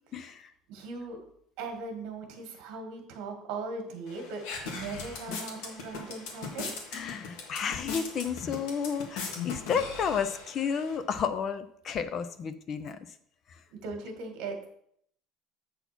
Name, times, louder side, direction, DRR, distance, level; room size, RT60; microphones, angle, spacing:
voice 1, 0.1-0.5 6.9-13.1 13.5-13.6, left 7 dB, 30° left, 12 dB, 0.4 m, -32 dB
voice 2, 0.7-1.2 1.6-6.9 13.7-14.6, right 3 dB, 65° right, 4 dB, 1.7 m, -39 dB
sound 1, 4.1-11.0, left 5 dB, 70° left, 1.6 m, -39 dB
8.1 x 4.1 x 5.9 m, 0.68 s
cardioid pair, 180°, 0 cm